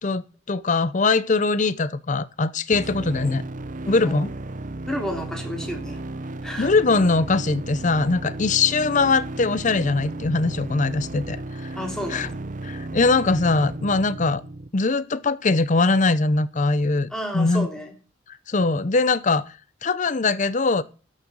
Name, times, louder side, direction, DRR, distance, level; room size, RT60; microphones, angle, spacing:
voice 1, 0.5-3.4 3.9-4.3 6.6-11.7 12.1-12.3 12.6-14.4 14.7-17.7 18.5-19.4 19.8-20.8, left 3 dB, 40° left, 0.6 m, -21 dB
sound 1, 2.7-14.7, right 2 dB, 40° right, 0.7 m, -34 dB
voice 2, 3.9-4.2 4.9-6.0 6.4-6.7 11.7-12.4 17.1-18.0, equal, 5° left, 3.0 m, -31 dB
13.0 x 6.6 x 6.2 m
head